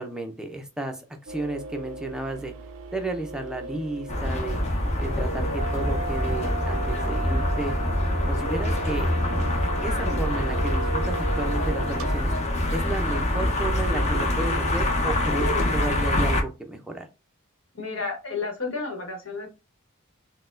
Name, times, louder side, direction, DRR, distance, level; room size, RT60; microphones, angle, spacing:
voice 1, 0.0-2.5 2.9-4.6 5.0-7.8 8.3-9.1 9.8-12.3 12.7-17.1, right 2 dB, 5° right, 4 dB, 0.5 m, -33 dB
sound 1, 1.3-12.2, right 3 dB, 85° right, 0.4 m, -36 dB
sound 2, 4.1-16.4, left 1 dB, 35° left, 0.7 m, -25 dB
voice 2, 17.7-19.5, left 4 dB, 70° left, 2 dB, 1.1 m, -31 dB
4.0 x 2.1 x 2.5 m, 0.28 s
head